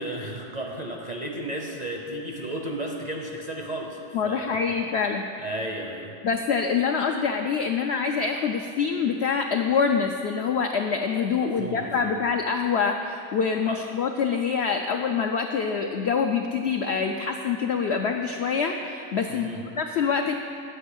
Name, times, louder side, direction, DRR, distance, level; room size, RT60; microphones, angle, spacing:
voice 1, 0.0-4.5 5.4-6.1 11.4-12.2 13.7-13.8 19.3-19.6, right 1 dB, 40° right, 0 dB, 0.6 m, -34 dB
voice 2, 4.1-5.3 6.2-19.5 19.8-20.3, left 6 dB, 75° left, 4 dB, 0.6 m, -25 dB
9.5 x 5.4 x 8.1 m, 2.6 s
omnidirectional pair, 1.6 m